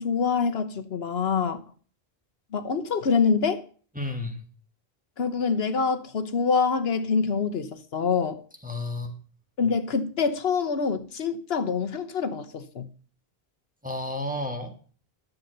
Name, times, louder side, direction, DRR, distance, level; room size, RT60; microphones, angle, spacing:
voice 1, 0.0-1.6 2.5-3.6 5.2-8.4 9.6-12.9, left 5 dB, 75° left, 1.2 m, -25 dB
voice 2, 4.0-4.4 8.6-9.1 13.8-14.8, left 2 dB, 10° right, 1.8 m, -31 dB
11.0 x 7.4 x 6.6 m
omnidirectional pair, 1.1 m